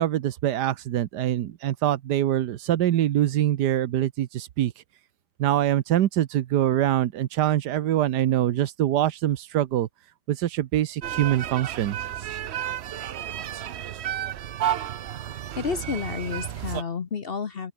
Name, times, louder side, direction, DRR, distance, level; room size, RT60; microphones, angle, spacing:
voice 1, 0.0-4.7 5.4-9.9 10.3-12.0, right 12 dB, 80° right, 1.4 m, -24 dB
sound 1, 11.0-16.8, right 10 dB, 60° right, 0.7 m, -32 dB
voice 2, 15.6-17.7, left 6 dB, 45° left, 0.9 m, -30 dB
open air
omnidirectional pair, 1.8 m